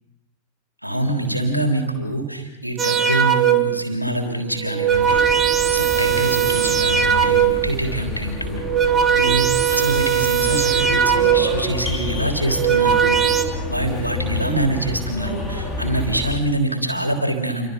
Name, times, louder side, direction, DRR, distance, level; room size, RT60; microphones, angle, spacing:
voice 1, 0.8-5.2 5.7-8.6 9.1-13.2 13.7-17.7, right 1 dB, 90° right, 4 dB, 3.5 m, -25 dB
sound 1, 2.8-3.8 4.6-7.7 8.5-11.6 12.4-13.4, right 9 dB, 25° right, 2.3 m, -19 dB
sound 2, 4.9-16.4, left 3 dB, 15° left, 4.5 m, -29 dB
29.0 x 24.5 x 5.3 m, 0.91 s
figure-of-eight pair, 90°, 0 cm